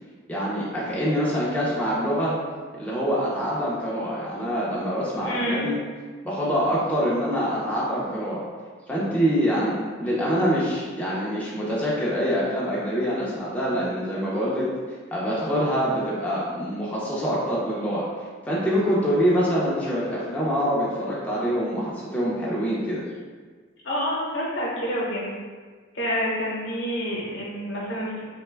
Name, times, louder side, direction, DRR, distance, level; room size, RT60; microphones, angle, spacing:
voice 1, 0.3-2.4 2.8-5.7 6.2-8.4 8.9-14.7 15.1-18.0 18.5-23.0, equal, 5° left, -7 dB, 0.4 m, -25 dB
voice 2, 5.2-5.7 23.8-25.4 25.9-28.2, equal, 65° left, -5 dB, 0.8 m, -28 dB
2.8 x 2.2 x 3.2 m, 1.5 s
head